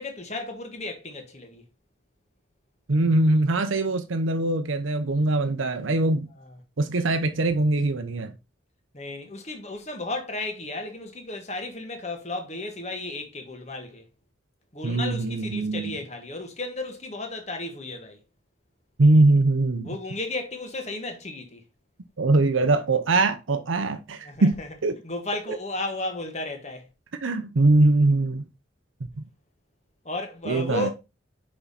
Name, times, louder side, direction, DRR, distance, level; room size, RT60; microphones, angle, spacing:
voice 1, 0.0-1.6 6.4-6.6 7.5-7.6 8.9-14.0 14.7-18.2 19.8-21.6 24.2-24.7 25.0-26.9 30.0-30.9, left 2 dB, 35° left, 1.5 m, -34 dB
voice 2, 2.9-6.3 6.8-8.3 14.8-15.9 19.0-19.9 22.2-25.0 27.2-28.5 29.2-29.3 30.5-30.9, right 2 dB, 80° right, 0.7 m, -22 dB
5.8 x 5.5 x 4.1 m
head